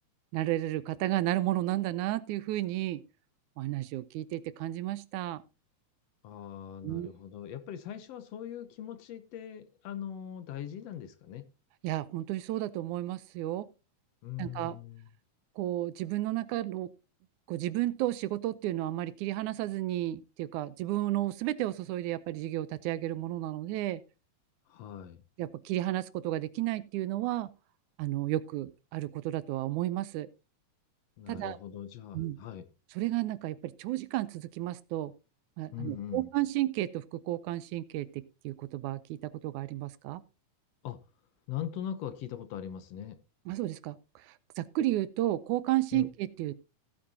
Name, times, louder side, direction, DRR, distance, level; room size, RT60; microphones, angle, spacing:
voice 1, 0.3-3.0 3.6-5.4 6.8-7.1 11.8-13.7 14.4-14.8 15.6-16.9 17.5-24.0 25.4-27.5 28.0-30.3 31.3-31.6 32.1-32.4 33.0-35.1 35.6-40.2 43.5-44.0 44.3-46.5, right 15 dB, 80° right, 2.1 m, -32 dB
voice 2, 6.2-11.5 14.2-15.1 24.7-25.2 31.2-32.7 35.7-36.3 40.8-41.0 41.5-43.2 45.9-46.1, left 10 dB, 65° left, 1.8 m, -41 dB
16.0 x 8.6 x 2.8 m
omnidirectional pair, 3.5 m